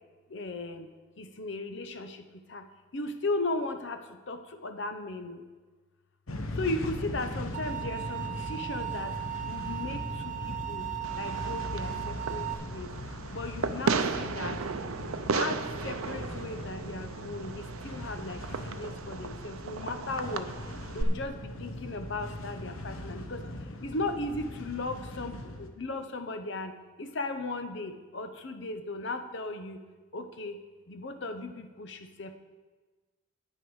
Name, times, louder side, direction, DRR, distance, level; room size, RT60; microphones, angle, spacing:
voice 1, 0.3-0.9 1.2-2.2 2.5-2.6 2.9-4.0 4.3-5.4 6.6-9.1 9.4-10.8 11.1-12.9 13.3-14.6 15.3-20.5 20.9-23.4 23.8-26.7 27.0-29.8 30.1-30.6 30.9-32.4, left 2 dB, 55° left, 8 dB, 0.7 m, -36 dB
sound 1, 6.3-25.7, left 1 dB, 80° left, 1.0 m, -40 dB
sound 2, 7.5-12.5, right 15 dB, 35° right, 0.5 m, -37 dB
Fireworks, 11.0-21.0, right 5 dB, 80° right, 0.6 m, -35 dB
9.8 x 9.3 x 4.7 m, 1.3 s
head